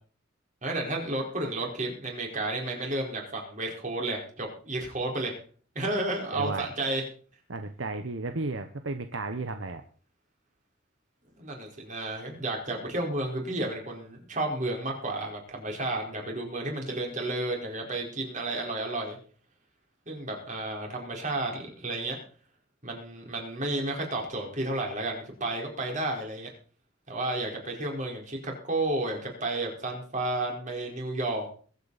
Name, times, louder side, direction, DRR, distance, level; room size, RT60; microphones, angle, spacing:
voice 1, 0.6-5.4 5.7-7.0 11.4-19.2 20.1-22.2 22.8-26.5 27.1-31.5, right 2 dB, 40° right, 1 dB, 4.7 m, -32 dB
voice 2, 6.3-6.6 7.5-9.8, right 2 dB, 70° right, 8 dB, 1.1 m, -33 dB
22.0 x 8.6 x 4.2 m, 0.42 s
head